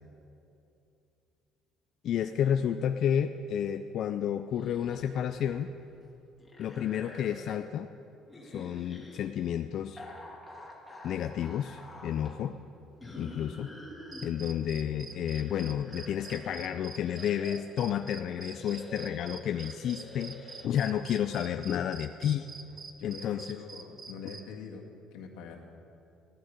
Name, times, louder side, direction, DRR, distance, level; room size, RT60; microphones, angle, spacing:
voice 1, 2.0-5.7 6.6-7.9 8.4-10.0 11.0-12.5 13.2-13.7 14.2-22.5 23.0-23.6, left 9 dB, 50° left, 8 dB, 0.4 m, -31 dB
sound 1, 4.6-5.7 6.0-7.6 8.3-9.2 10.0-12.4 13.0-14.3 15.0-17.7 18.3-20.7, left 1 dB, 5° left, 2.0 m, -48 dB
sound 2, 14.1-24.4, right 5 dB, 25° right, 0.7 m, -46 dB
voice 2, 23.0-25.6, left 5 dB, 85° left, 0 dB, 1.9 m, -45 dB
15.5 x 11.5 x 5.2 m, 2.7 s
cardioid pair, 155°, 0 cm